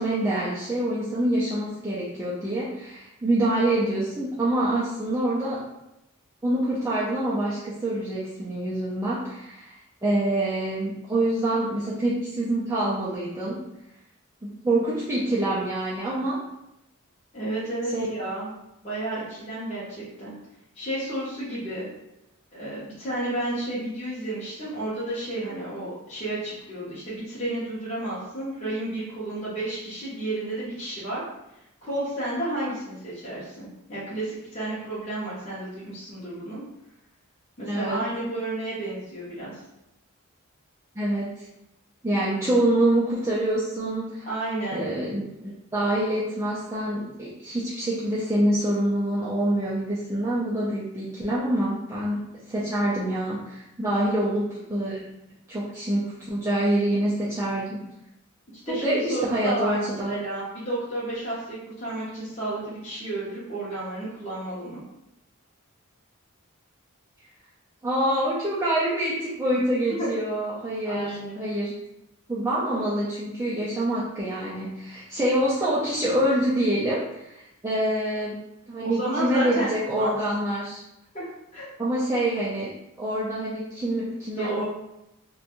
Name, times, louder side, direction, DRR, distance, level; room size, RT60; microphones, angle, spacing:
voice 1, 0.0-5.6 6.4-9.8 10.0-13.6 14.4-16.4 17.9-18.1 37.7-38.0 41.0-41.5 42.0-44.3 44.7-52.2 52.5-55.0 55.5-57.8 58.7-60.2 67.8-71.7 72.3-78.4 78.7-80.8 81.8-82.7 83.0-84.6, right 1 dB, 15° right, -9 dB, 0.3 m, -26 dB
voice 2, 17.3-18.5 18.8-20.3 20.8-21.9 22.5-31.2 31.8-36.6 37.6-39.6 44.3-44.9 58.7-64.8 70.0-70.1 70.9-71.4 78.8-79.7 80.0-80.2 81.1-81.7 84.4-84.6, right 1 dB, 30° left, -9 dB, 0.7 m, -31 dB
2.5 x 2.2 x 2.9 m, 0.87 s
head